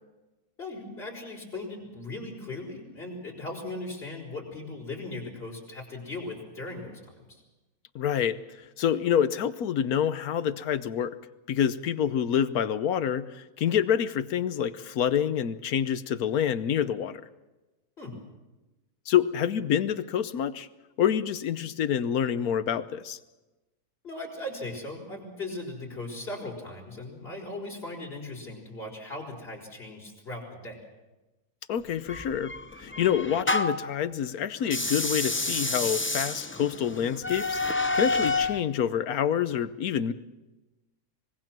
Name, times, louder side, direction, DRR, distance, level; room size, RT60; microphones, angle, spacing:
voice 1, 0.6-7.4 18.0-18.2 24.0-30.8, left 2 dB, 40° left, -1 dB, 5.4 m, -38 dB
voice 2, 7.9-11.1 11.5-17.3 19.1-20.7 21.0-23.2 31.7-40.1, left 9 dB, 75° left, 14 dB, 1.3 m, -27 dB
sound 1, 32.1-33.9 34.6-38.6, left 2 dB, 15° left, 0.4 m, -29 dB
25.0 x 21.5 x 6.1 m, 1.1 s
omnidirectional pair, 1.6 m